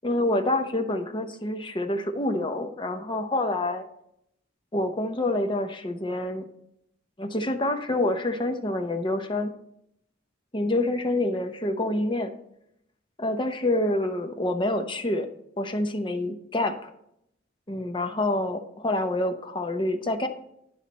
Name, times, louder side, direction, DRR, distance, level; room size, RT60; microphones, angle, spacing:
voice 1, 0.0-3.8 4.7-6.5 7.2-9.5 10.5-12.3 13.2-15.3 15.6-16.9 17.7-20.3, left 1 dB, 25° left, 6 dB, 0.8 m, -27 dB
10.0 x 5.6 x 4.2 m, 0.75 s
head